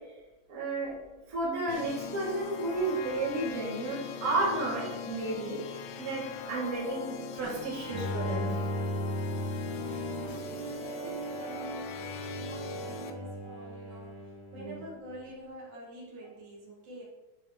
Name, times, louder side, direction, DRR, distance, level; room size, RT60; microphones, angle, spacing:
voice 1, 0.5-0.9 1.3-5.6 6.0-8.5 9.8-10.0 14.5-14.8, right 2 dB, 30° right, -6 dB, 2.0 m, -32 dB
sound 1, 1.7-13.1, left 5 dB, 80° left, 2.3 m, -40 dB
Bowed string instrument, 7.9-15.1, equal, 20° left, 1.1 m, -37 dB
voice 2, 10.6-12.0 12.3-17.1, right 1 dB, 80° right, -4 dB, 3.4 m, -47 dB
10.5 x 4.3 x 2.9 m, 1.1 s
omnidirectional pair, 4.1 m